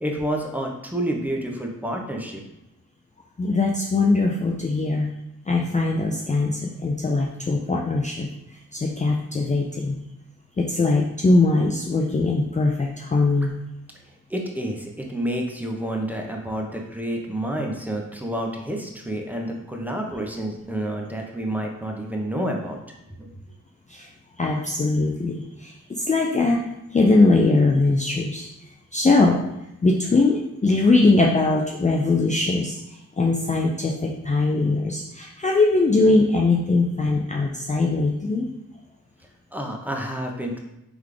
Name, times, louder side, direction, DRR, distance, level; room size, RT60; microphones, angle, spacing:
voice 1, 0.0-2.4 14.3-22.8 23.2-23.3 39.5-40.6, right 1 dB, 5° right, 0 dB, 0.8 m, -29 dB
voice 2, 3.4-5.1 5.5-8.3 8.7-10.0 10.6-13.5 23.9-24.1 24.4-26.6 26.9-28.5 28.9-29.4 29.8-38.5, left 3 dB, 20° left, 0 dB, 0.4 m, -21 dB
3.7 x 3.3 x 3.3 m, 0.85 s
cardioid pair, 55°, 33 cm